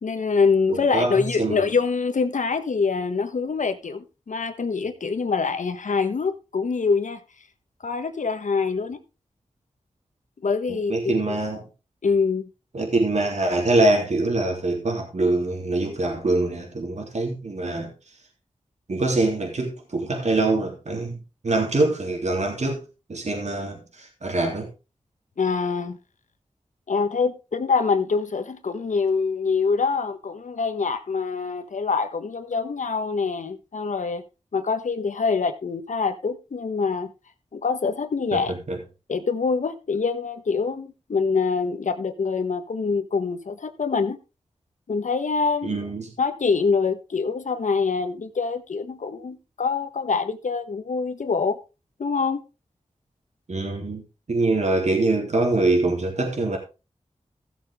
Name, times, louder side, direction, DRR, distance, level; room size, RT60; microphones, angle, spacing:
voice 1, 0.0-7.2 7.8-9.0 10.4-11.4 12.0-12.5 25.4-26.0 26.9-34.2 34.5-37.1 37.5-38.5 39.1-44.2 44.9-45.8 46.2-51.6 52.0-52.4, left 5 dB, 75° left, 1.4 m, -25 dB
voice 2, 0.7-1.7 10.7-11.7 12.7-17.9 18.9-22.8 23.1-24.7 38.3-38.8 45.6-46.1 53.5-54.0 54.3-56.6, right 2 dB, 65° right, 3.4 m, -24 dB
15.5 x 7.3 x 3.7 m
cardioid pair, 40°, 13 cm